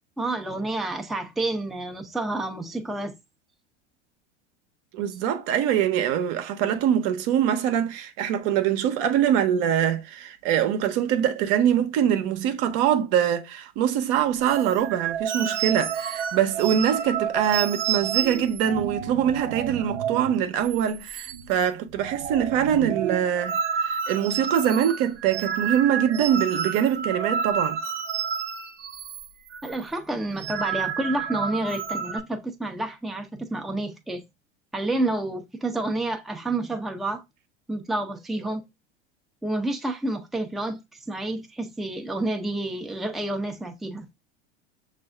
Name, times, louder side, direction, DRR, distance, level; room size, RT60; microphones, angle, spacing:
voice 1, 0.2-3.1 29.6-34.2 34.7-37.2 37.7-38.6 39.4-44.1, right 2 dB, ahead, 0.6 m, -29 dB
voice 2, 4.9-27.8, right 9 dB, 55° right, 0.8 m, -23 dB
sound 1, 14.4-20.4 20.7-20.8 21.1-21.6 21.9-29.3 29.5-29.8 30.2-32.2, right 8 dB, 85° right, 0.6 m, -30 dB
6.1 x 2.6 x 2.2 m
hypercardioid pair, 85°, 35 cm